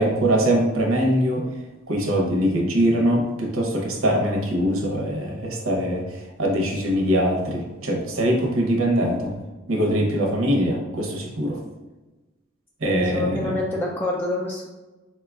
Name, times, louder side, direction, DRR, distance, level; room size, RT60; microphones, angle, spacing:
voice 1, 0.0-1.4 1.9-9.3 9.7-11.6 12.8-13.6, equal, 80° right, 0 dB, 0.8 m, -22 dB
voice 2, 12.8-14.7, left 2 dB, 10° left, -3 dB, 0.3 m, -27 dB
4.4 x 2.3 x 2.3 m, 1.1 s
head